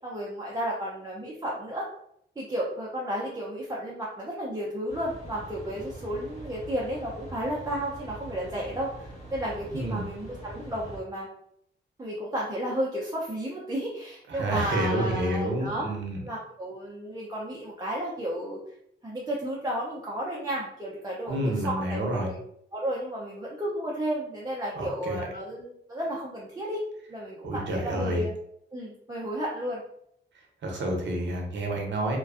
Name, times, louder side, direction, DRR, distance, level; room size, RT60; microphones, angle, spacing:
voice 1, 0.0-1.8 2.4-11.3 12.0-15.9 16.2-18.7 19.0-22.4 22.7-26.8 27.1-28.4 28.7-29.8, right 1 dB, 20° right, -5 dB, 0.5 m, -33 dB
sound 1, 4.9-11.0, right 1 dB, 35° left, 1.1 m, -43 dB
voice 2, 9.7-10.1 14.3-16.2 21.3-22.3 24.8-25.2 27.4-28.3 30.6-32.2, right 1 dB, 70° right, 1 dB, 0.7 m, -29 dB
2.4 x 2.2 x 2.4 m, 0.71 s
cardioid pair, 95°, 19 cm